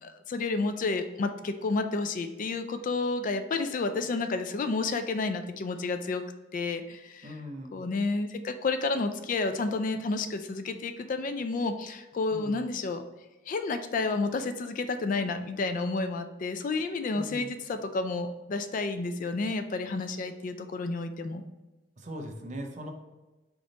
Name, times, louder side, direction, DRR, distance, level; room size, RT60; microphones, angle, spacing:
voice 1, 0.0-6.2 6.5-7.3 7.7-13.0 13.5-21.4, left 3 dB, 45° left, 8 dB, 0.3 m, -30 dB
voice 2, 7.2-7.8 12.3-12.7 17.1-17.6 22.0-22.9, equal, 40° right, 4 dB, 0.6 m, -40 dB
3.8 x 3.5 x 4.0 m, 1.1 s
head